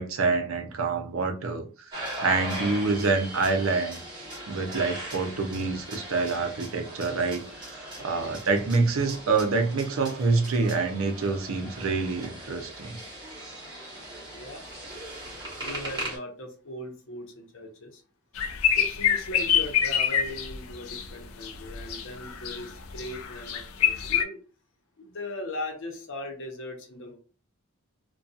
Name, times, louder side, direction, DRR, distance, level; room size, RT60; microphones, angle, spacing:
voice 1, 0.0-1.9 2.2-13.0, right 4 dB, 70° right, 0.5 m, -27 dB
sound 1, 1.9-16.2, right 1 dB, 20° right, 1.2 m, -39 dB
voice 2, 8.0-8.4 14.3-14.7 15.6-18.0 18.7-24.4 25.0-27.2, left 1 dB, 65° left, 0.8 m, -39 dB
sound 2, 18.3-21.1 21.4-22.6 22.9-24.2, left 9 dB, 80° left, 0.4 m, -25 dB
2.7 x 2.3 x 2.3 m
head